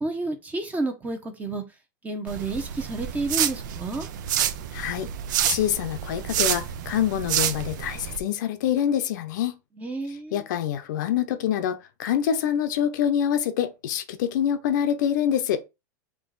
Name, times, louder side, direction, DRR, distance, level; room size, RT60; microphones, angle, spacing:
voice 1, 0.0-1.6 2.0-4.1 9.8-10.4, right 2 dB, 15° right, 0.8 m, -30 dB
sound 1, 2.3-8.2, right 10 dB, 75° right, 0.5 m, -28 dB
voice 2, 4.7-5.1 5.5-9.6 10.3-15.6, left 9 dB, 70° left, 0.7 m, -25 dB
3.7 x 2.6 x 3.9 m
supercardioid pair, 125°, 10 cm